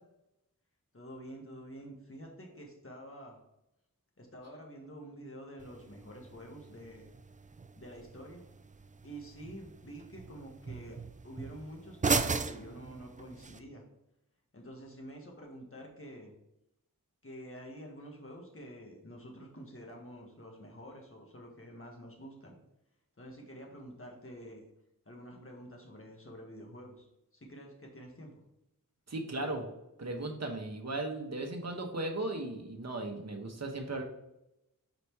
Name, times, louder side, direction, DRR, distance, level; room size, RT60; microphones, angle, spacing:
voice 1, 0.9-3.4 4.2-7.1 7.7-8.4 9.0-11.0 11.2-13.8 14.5-16.3 17.2-22.5 23.2-24.6 25.0-27.1 27.3-28.4, equal, 40° left, 0 dB, 1.6 m, -48 dB
sound 1, 5.6-13.6, right 4 dB, 25° right, 0.3 m, -38 dB
voice 2, 29.1-29.6 30.0-34.0, right 2 dB, 50° right, 3 dB, 1.1 m, -36 dB
5.1 x 4.2 x 4.7 m, 0.88 s
wide cardioid pair, 60°, 34 cm